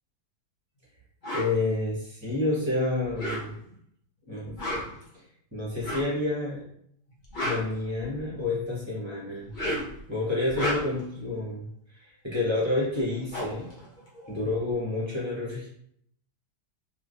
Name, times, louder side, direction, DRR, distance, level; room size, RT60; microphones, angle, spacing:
sound 1, 1.2-1.5 3.0-3.8 4.4-5.0 5.8-6.2 7.1-8.4 9.4-10.0 10.4-11.1 12.6-12.7 13.0-14.7, equal, 45° left, 0.6 m, -33 dB
voice 1, 1.3-3.6 4.3-4.6 5.1-5.3 5.5-6.6 7.4-9.5 10.1-13.7 14.3-15.7, left 2 dB, 20° right, -6 dB, 0.8 m, -29 dB
3.4 x 2.9 x 2.5 m, 0.69 s
omnidirectional pair, 1.9 m